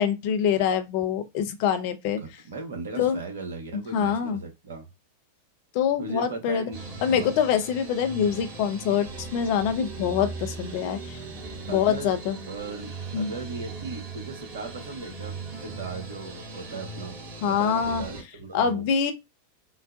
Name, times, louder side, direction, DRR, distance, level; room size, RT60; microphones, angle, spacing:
voice 1, 0.0-2.2 3.0-3.2 3.9-4.4 5.7-6.6 7.0-11.2 11.7-12.4 13.1-13.3 17.4-18.0 18.5-19.1, left 8 dB, 45° left, 0.6 m, -25 dB
voice 2, 2.2-4.9 6.0-7.3 11.7-12.1 12.5-17.2 17.5-18.8, right 3 dB, 65° right, 1.2 m, -37 dB
sound 1, 6.7-18.2, right 3 dB, 40° right, 1.7 m, -39 dB
3.9 x 2.2 x 2.5 m
figure-of-eight pair, 90°, 0 cm